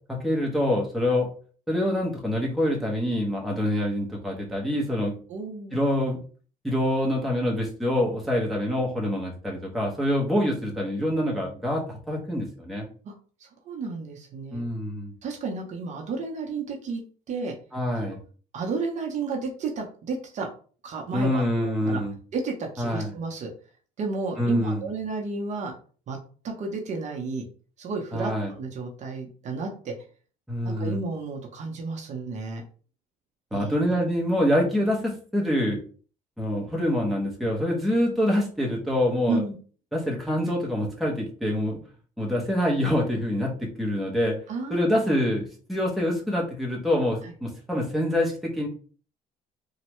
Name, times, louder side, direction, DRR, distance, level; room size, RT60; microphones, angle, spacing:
voice 1, 0.1-1.3 1.7-5.1 5.7-6.2 6.6-12.9 14.5-15.1 17.7-18.2 21.1-22.1 22.8-23.1 24.4-24.8 28.1-28.5 30.5-31.0 33.5-35.8 36.4-39.4 39.9-41.8 42.2-44.3 44.7-48.7, left 1 dB, ahead, -2 dB, 0.8 m, -26 dB
voice 2, 5.3-5.8 13.0-13.1 13.4-14.6 15.2-17.0 17.3-17.5 18.0-18.2 18.5-20.5 20.8-22.0 22.3-23.5 24.0-25.7 26.1-26.2 26.4-27.4 27.8-29.9 30.6-32.6 33.5-33.8 39.3-39.5 44.5-44.8 45.1-45.2 47.2-47.3, right 3 dB, 50° right, 2 dB, 0.7 m, -32 dB
3.1 x 2.2 x 3.0 m, 0.40 s
cardioid pair, 130°, 15 cm